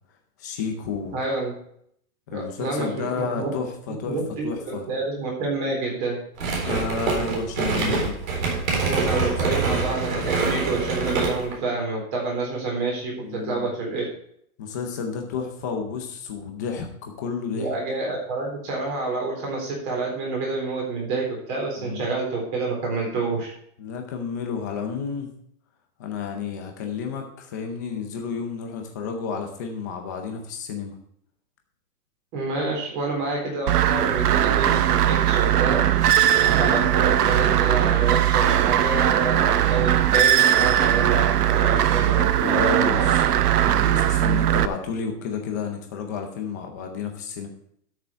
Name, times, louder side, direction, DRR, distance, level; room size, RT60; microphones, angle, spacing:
voice 1, 0.4-1.2 2.3-4.9 6.7-8.2 8.9-9.6 13.2-13.7 14.6-17.7 21.8-22.0 23.8-25.3 26.0-31.0 36.7-36.9 42.4-43.0 43.6-47.5, left 5 dB, 10° left, 3 dB, 0.5 m, -31 dB
voice 2, 1.1-1.5 2.3-3.5 4.1-6.2 8.8-14.1 17.5-23.5 32.3-35.9 36.4-43.1, right 3 dB, 30° right, -1 dB, 3.9 m, -28 dB
sound 1, 6.4-11.6, right 4 dB, 55° right, 3.9 m, -25 dB
sound 2, 33.7-44.7, right 11 dB, 75° right, 0.9 m, -19 dB
12.0 x 6.7 x 4.5 m, 0.67 s
hypercardioid pair, 165°, 47 cm